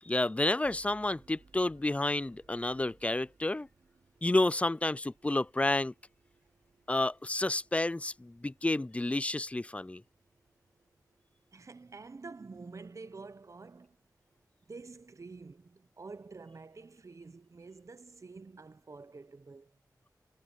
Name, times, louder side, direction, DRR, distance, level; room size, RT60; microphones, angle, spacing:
voice 1, 0.0-3.7 4.2-5.9 6.9-10.0, left 2 dB, 20° left, 0.4 m, -30 dB
sound 1, 0.6-19.2, right 4 dB, 75° right, 3.6 m, -67 dB
voice 2, 11.5-14.0 14.7-19.7, right 4 dB, 45° right, 0.8 m, -48 dB
wide cardioid pair, 65°, 7 cm